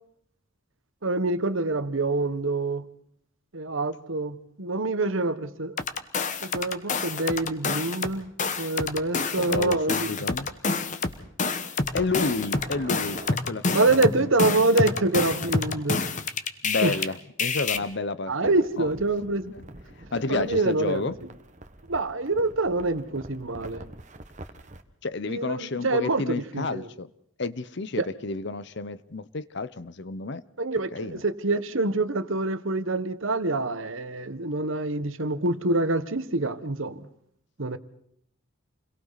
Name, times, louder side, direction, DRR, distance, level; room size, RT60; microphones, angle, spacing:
voice 1, 1.0-2.8 3.5-5.8 6.4-8.3 8.6-10.1 13.7-16.0 16.8-16.9 18.3-19.6 20.3-21.0 21.9-23.9 25.3-26.8 28.0-28.1 30.6-37.1 37.6-37.8, right 2 dB, 70° right, 1.3 m, -26 dB
sound 1, 5.8-8.1 8.4-17.1 17.4-17.8, left 4 dB, 35° left, 1.2 m, -28 dB
voice 2, 9.4-10.5 11.9-14.5 16.6-18.9 19.5-19.6 19.9-21.2 25.0-27.1 27.4-30.4 30.9-31.2, left 3 dB, 55° left, 0.8 m, -31 dB
sound 2, 11.9-13.4 15.1-15.8 18.4-24.8, right 1 dB, 35° right, 1.4 m, -44 dB
29.0 x 22.5 x 4.1 m
head